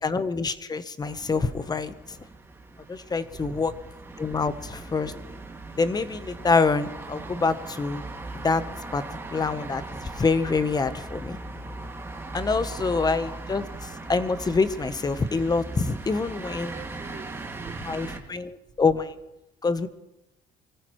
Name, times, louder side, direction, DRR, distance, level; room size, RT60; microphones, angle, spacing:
voice 1, 0.0-2.2 2.9-3.7 4.2-5.1 5.8-8.0 8.4-8.6 8.9-9.0 9.3-11.4 12.3-13.6 14.1-16.7 17.9-19.2 19.6-19.9, left 4 dB, 25° left, 13 dB, 0.9 m, -26 dB
sound 1, 1.0-18.2, right 2 dB, 15° right, 2.2 m, -39 dB
voice 2, 3.3-3.7 4.3-4.6 16.7-18.1, right 4 dB, 40° right, -2 dB, 4.9 m, -44 dB
25.0 x 14.5 x 3.1 m, 0.94 s
cardioid pair, 110°, 17 cm